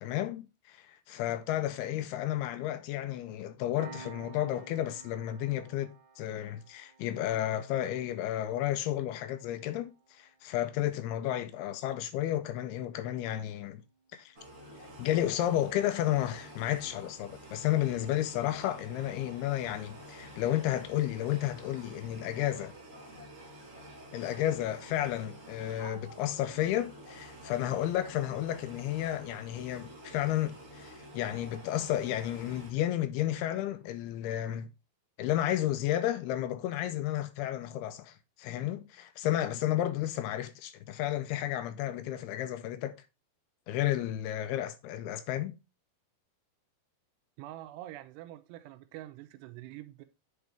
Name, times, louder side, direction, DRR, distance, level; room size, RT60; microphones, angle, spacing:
voice 1, 0.0-13.8 14.1-14.3 15.0-22.7 24.1-34.7 35.2-42.9 43.7-45.5, left 12 dB, 85° left, 2.4 m, -32 dB
Piano, 3.8-14.9, right 6 dB, 65° right, 1.9 m, -55 dB
sound 1, 14.3-32.7, equal, 50° right, 0.9 m, -49 dB
voice 2, 47.4-50.1, right 14 dB, 85° right, 2.7 m, -45 dB
9.7 x 4.1 x 3.4 m
omnidirectional pair, 4.8 m